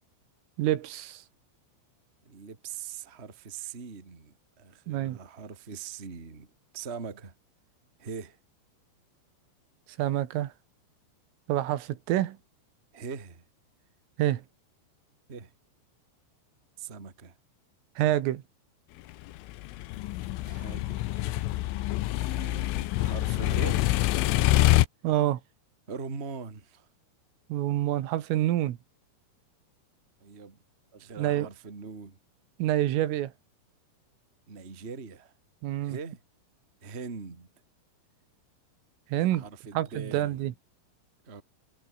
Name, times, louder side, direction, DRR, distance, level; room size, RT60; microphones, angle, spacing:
voice 1, 0.6-1.2 4.9-5.2 10.0-10.5 11.5-12.4 14.2-14.4 18.0-18.4 25.0-25.4 27.5-28.8 31.2-31.5 32.6-33.3 35.6-36.0 39.1-39.4 39.8-40.5, right 13 dB, 85° right, 4.3 m, -27 dB
voice 2, 2.2-6.5 6.7-7.3 8.0-8.4 12.9-13.4 15.3-15.5 16.8-17.4 20.4-21.5 21.8-23.9 25.9-26.9 30.2-30.6 30.9-32.2 34.5-35.3 35.8-36.2 36.8-37.5 39.3-40.4 41.2-41.4, right 5 dB, 25° right, 1.4 m, -41 dB
sound 1, 19.3-24.9, left 17 dB, 85° left, 3.5 m, -26 dB
omnidirectional pair, 5.7 m